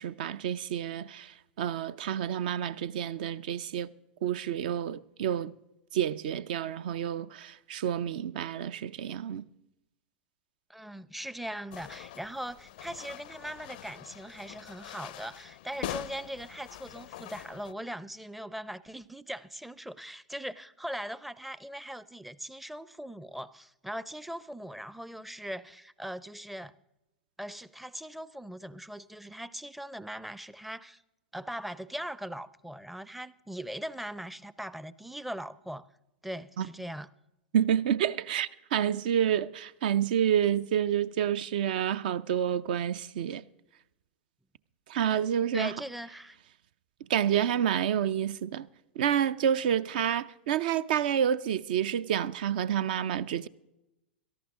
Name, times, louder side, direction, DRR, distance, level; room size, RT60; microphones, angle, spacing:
voice 1, 0.0-3.9 4.2-5.5 5.9-9.5 36.6-36.7 37.5-43.4 44.9-45.7 47.0-48.7 49.0-53.5, right 9 dB, 60° right, 0.5 m, -29 dB
voice 2, 10.7-26.7 27.4-31.0 31.3-35.9 36.2-37.1 45.5-46.4, equal, 5° right, 0.5 m, -40 dB
sound 1, 11.7-17.7, left 14 dB, 60° left, 0.5 m, -43 dB
17.5 x 13.5 x 3.7 m
hypercardioid pair, 100°, 5 cm